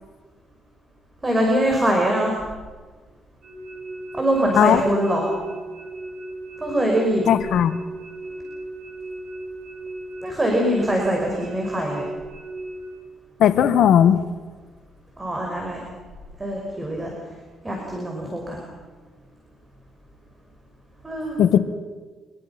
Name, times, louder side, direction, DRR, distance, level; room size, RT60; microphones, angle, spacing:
voice 1, 1.2-2.4 4.1-5.3 6.6-7.3 10.2-12.1 15.2-15.8 16.4-17.1 17.6-18.6 21.0-21.4, right 1 dB, 20° right, 0 dB, 6.0 m, -23 dB
sound 1, 3.4-12.9, right 2 dB, 50° right, 6.7 m, -36 dB
voice 2, 7.3-7.7 13.4-14.2 21.4-21.6, left 10 dB, 75° left, 11 dB, 1.3 m, -16 dB
26.0 x 23.0 x 6.0 m, 1.4 s
cardioid pair, 90°, 0 cm